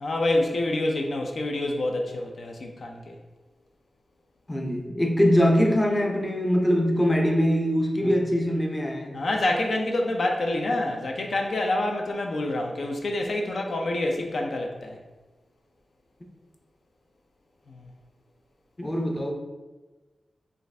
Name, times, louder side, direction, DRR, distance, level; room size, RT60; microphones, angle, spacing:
voice 1, 0.0-3.1 8.0-8.2 9.1-15.0 17.7-17.8, left 1 dB, 70° left, 2 dB, 0.5 m, -27 dB
voice 2, 4.5-9.2 18.8-19.3, equal, 20° left, 1 dB, 0.6 m, -23 dB
5.0 x 2.5 x 3.3 m, 1.2 s
wide cardioid pair, 80°, 0 cm